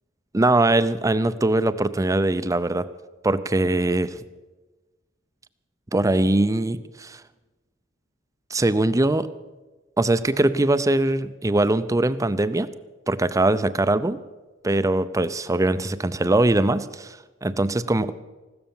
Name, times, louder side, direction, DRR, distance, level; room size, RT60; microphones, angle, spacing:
voice 1, 0.3-2.9 3.2-4.2 5.9-7.2 8.5-9.3 10.0-12.7 13.1-14.2 14.6-18.1, right 2 dB, 15° right, 14 dB, 0.5 m, -21 dB
15.5 x 13.0 x 7.1 m, 1.2 s
head